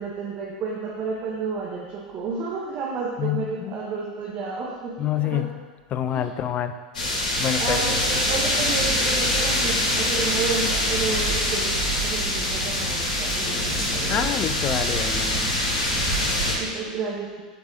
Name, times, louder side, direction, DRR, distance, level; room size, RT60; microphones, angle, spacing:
voice 1, 0.0-5.5 6.1-6.3 7.6-13.6 13.9-14.3 16.5-17.3, right 4 dB, 45° right, -4 dB, 1.5 m, -31 dB
voice 2, 3.2-3.8 5.0-5.5 5.9-6.7 7.4-7.8 14.1-15.5, left 10 dB, 35° left, 10 dB, 0.5 m, -27 dB
sound 1, 6.9-16.5, left 1 dB, 75° left, 2.5 m, -24 dB
10.0 x 4.7 x 4.2 m, 1.4 s
hypercardioid pair, 90°, 4 cm